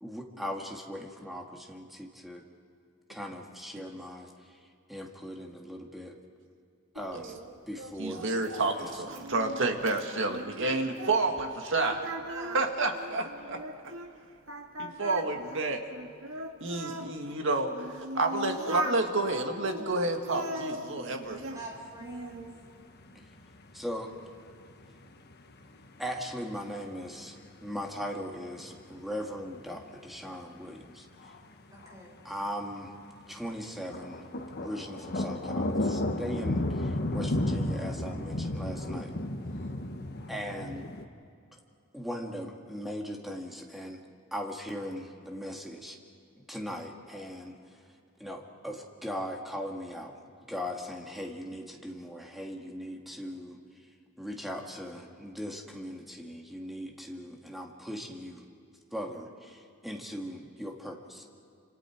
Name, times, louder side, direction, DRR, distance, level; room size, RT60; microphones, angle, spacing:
voice 1, 0.0-2.4 3.1-4.6 4.9-6.2 6.9-7.4 7.7-8.3 8.8-9.2 23.7-24.1 26.0-27.4 27.6-31.1 32.2-32.9 33.3-34.2 34.6-39.2 40.3-40.9 41.9-44.0 44.3-46.0 46.4-47.6 48.2-50.2 50.5-53.6 54.2-58.4 58.9-61.3, equal, ahead, 0 dB, 2.2 m, -39 dB
Singing, 7.0-11.5 11.8-14.1 14.5-17.1 17.7-19.0 19.6-21.6 22.0-22.6, right 1 dB, 80° right, 1.9 m, -39 dB
voice 2, 8.0-12.0 12.3-13.6 14.8-15.8 16.6-21.4, right 2 dB, 65° right, 4 dB, 2.1 m, -30 dB
sound 1, 21.3-26.3 26.8-27.1 27.4-27.7 28.2-28.3 29.0-29.1 29.7-29.8 30.2-30.3 30.8-31.4 31.8-32.0 32.5-32.6 33.0-33.2 33.8-41.0, left 1 dB, 50° left, 1.3 m, -33 dB
voice 3, 21.5-22.4 31.7-32.2 39.4-39.8, right 2 dB, 20° right, -2 dB, 6.3 m, -47 dB
29.5 x 26.5 x 4.7 m, 2.4 s
head